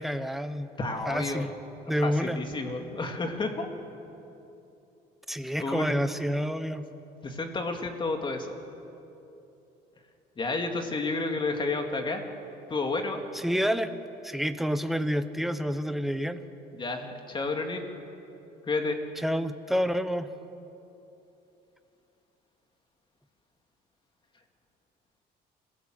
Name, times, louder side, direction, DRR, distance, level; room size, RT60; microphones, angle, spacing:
voice 1, 0.0-0.7 1.0-1.5 1.9-2.4 5.3-6.9 13.3-13.9 14.2-16.4 19.2-20.3, equal, ahead, 10 dB, 1.0 m, -28 dB
voice 2, 0.8-1.5 2.0-3.7 5.6-6.0 7.2-8.5 10.4-12.2 12.7-13.2 16.7-17.8 18.6-19.0, left 3 dB, 30° left, 4 dB, 2.5 m, -31 dB
26.5 x 16.5 x 7.9 m, 2.9 s
cardioid pair, 110°, 17 cm